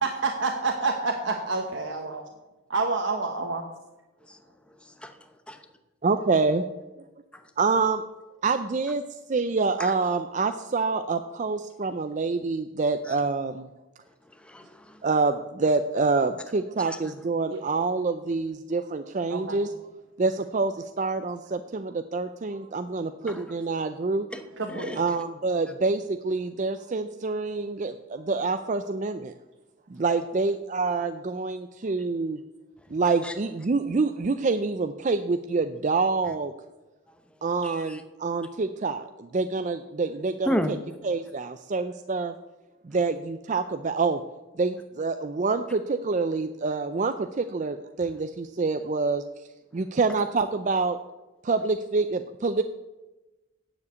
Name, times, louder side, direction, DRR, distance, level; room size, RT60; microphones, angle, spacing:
voice 1, 0.0-2.2 2.7-3.6 17.5-17.6 19.3-19.6 24.6-25.0, right 3 dB, 60° right, 2 dB, 1.1 m, -28 dB
voice 2, 6.0-6.6 7.6-8.0 8.4-9.0 9.3-13.7 15.0-19.7 20.2-24.3 25.0-29.3 29.9-32.4 32.9-36.5 37.4-40.8 41.0-42.3 42.8-44.2 44.6-49.2 49.7-51.0 51.4-52.6, right 4 dB, 35° right, 9 dB, 0.4 m, -26 dB
voice 3, 14.4-15.0 16.8-17.0 23.3-23.4 24.3-24.4 24.7-25.0 33.2-33.3 37.6-38.0 40.5-40.7, equal, 5° left, 7 dB, 0.7 m, -31 dB
9.6 x 7.3 x 8.2 m, 1.1 s
head